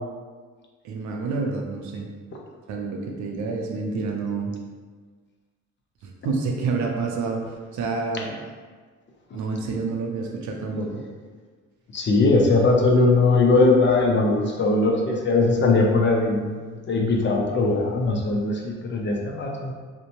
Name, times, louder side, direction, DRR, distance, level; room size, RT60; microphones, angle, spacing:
voice 1, 0.8-2.1 2.7-4.5 6.0-8.4 9.3-11.0, right 4 dB, 75° right, 1 dB, 0.5 m, -28 dB
voice 2, 11.9-19.7, left 3 dB, 40° left, 0 dB, 0.5 m, -20 dB
2.6 x 2.1 x 2.8 m, 1.5 s
cardioid pair, 90°, 30 cm